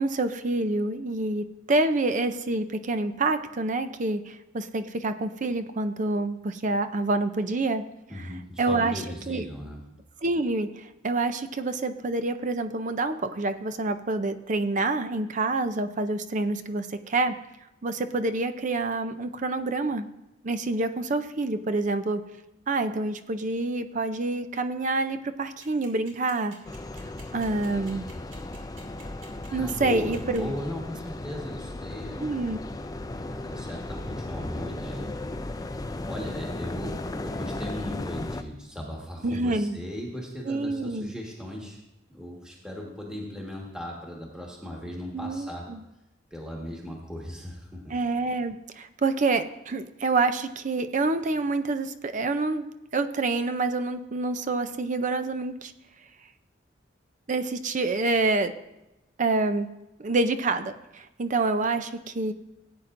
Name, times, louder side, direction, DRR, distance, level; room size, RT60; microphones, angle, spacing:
voice 1, 0.0-7.8 8.6-9.4 10.2-17.3 17.8-20.1 20.4-22.2 22.7-26.5 27.3-28.1 29.5-30.5 32.2-32.6 39.2-39.8 40.5-41.1 45.1-45.8 47.9-52.7 52.9-55.7 57.3-58.5 59.2-59.7 60.0-62.3, right 3 dB, 40° right, 10 dB, 0.5 m, -27 dB
voice 2, 8.1-9.8 29.6-32.4 33.3-35.1 36.1-41.8 42.1-45.6 46.3-48.0, equal, 5° right, -2 dB, 1.5 m, -37 dB
sound 1, 25.6-30.6, right 4 dB, 85° right, 2.5 m, -49 dB
sound 2, 26.6-38.4, left 2 dB, 20° left, 0.4 m, -36 dB
17.0 x 8.7 x 2.6 m, 0.92 s
head